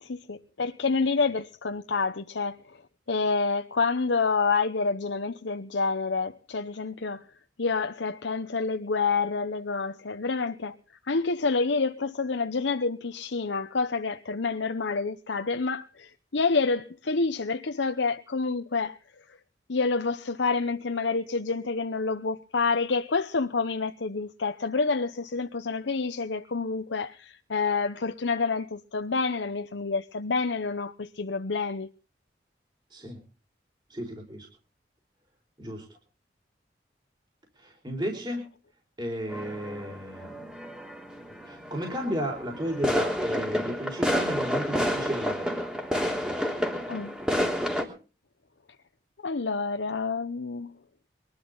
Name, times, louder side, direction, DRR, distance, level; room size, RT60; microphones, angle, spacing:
voice 1, 0.0-2.6 3.1-7.2 7.6-10.8 11.1-19.0 19.7-31.9 46.9-47.2 49.2-50.7, left 4 dB, 90° left, 0.9 m, -28 dB
voice 2, 33.9-34.5 35.6-35.8 37.6-38.4 39.0-40.5 41.5-45.7, equal, 25° right, 4.7 m, -34 dB
sound 1, 39.3-47.8, equal, 5° right, 3.3 m, -30 dB
23.5 x 12.5 x 3.9 m
head